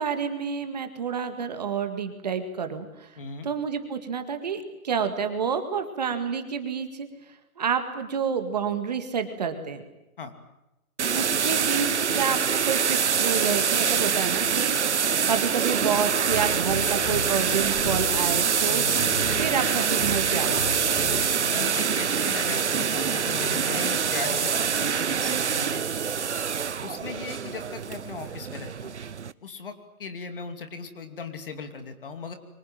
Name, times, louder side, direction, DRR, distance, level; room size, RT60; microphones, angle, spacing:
voice 1, 0.0-7.1 7.6-9.8 11.1-18.8 19.4-20.7, right 6 dB, 30° right, 7 dB, 2.0 m, -29 dB
voice 2, 3.2-3.5 10.2-10.3 21.4-25.8 26.8-28.9 29.4-32.3, left 5 dB, 35° left, 8 dB, 2.7 m, -38 dB
sound 1, 11.0-29.3, right 7 dB, 50° right, 0.9 m, -25 dB
sound 2, 16.3-21.3, left 1 dB, 65° left, 7.1 m, -36 dB
29.5 x 24.5 x 7.6 m, 0.95 s
hypercardioid pair, 175°, 44 cm